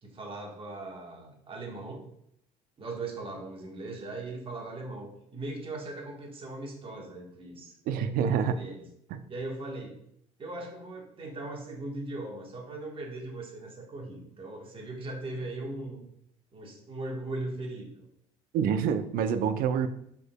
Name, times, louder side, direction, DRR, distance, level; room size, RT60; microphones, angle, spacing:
voice 1, 0.0-2.1 2.8-7.7 8.4-8.9 9.3-10.0 10.4-16.0 16.5-18.0, right 2 dB, 35° right, 0 dB, 1.3 m, -39 dB
voice 2, 7.9-8.6 9.1-9.2 18.5-19.9, right 7 dB, 60° right, 11 dB, 0.5 m, -27 dB
5.0 x 3.9 x 2.2 m, 0.72 s
hypercardioid pair, 75°, 16 cm